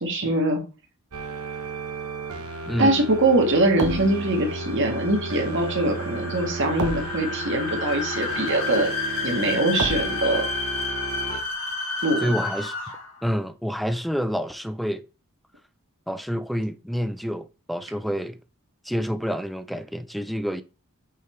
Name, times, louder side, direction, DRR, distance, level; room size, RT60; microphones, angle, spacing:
voice 1, 0.0-0.6 2.8-8.9 9.2-10.5 12.0-12.3, right 2 dB, 55° right, 1.7 m, -23 dB
sound 1, 1.1-11.4, right 3 dB, 75° right, 1.0 m, -33 dB
sound 2, 2.6-13.2, left 4 dB, 65° left, 2.0 m, -31 dB
voice 2, 2.7-3.0 12.2-12.7 13.2-15.0 16.1-18.4 18.8-20.6, equal, ahead, 0.3 m, -28 dB
5.6 x 3.8 x 4.4 m
head